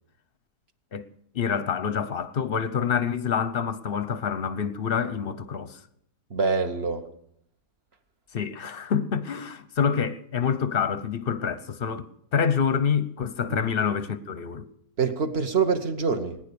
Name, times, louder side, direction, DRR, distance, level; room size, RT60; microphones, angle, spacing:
voice 1, 1.3-5.8 8.3-14.6, left 7 dB, 45° left, 0.8 m, -27 dB
voice 2, 6.3-7.1 13.5-13.7 15.0-16.4, right 5 dB, 45° right, 1.2 m, -25 dB
20.0 x 9.9 x 6.8 m
omnidirectional pair, 1.8 m